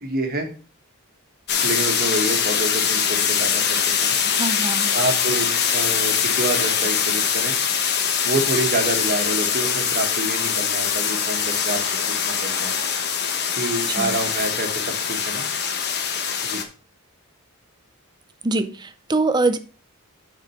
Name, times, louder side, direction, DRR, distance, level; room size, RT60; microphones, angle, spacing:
voice 1, 0.0-0.5 1.6-4.1 4.9-7.5 8.2-11.8 12.2-12.8 13.6-15.4 16.4-16.6, right 2 dB, 40° right, 1.6 m, -27 dB
sound 1, 1.5-16.6, left 7 dB, 45° left, 1.0 m, -23 dB
voice 2, 4.2-4.9 13.9-14.2 18.4-19.6, right 2 dB, 20° right, 0.5 m, -23 dB
7.6 x 4.5 x 5.6 m
head